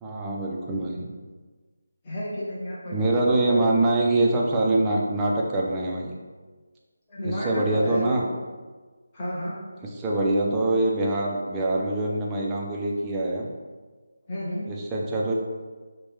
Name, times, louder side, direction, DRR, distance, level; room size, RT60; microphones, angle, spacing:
voice 1, 0.0-1.1 2.9-6.2 7.2-8.3 9.9-13.5 14.7-15.3, right 2 dB, 10° right, -3 dB, 0.4 m, -24 dB
voice 2, 2.0-3.0 3.4-3.7 7.1-8.2 9.1-9.5 14.3-14.6, equal, 20° left, -9 dB, 0.7 m, -31 dB
4.6 x 2.1 x 3.2 m, 1.4 s
figure-of-eight pair, 170°, 0 cm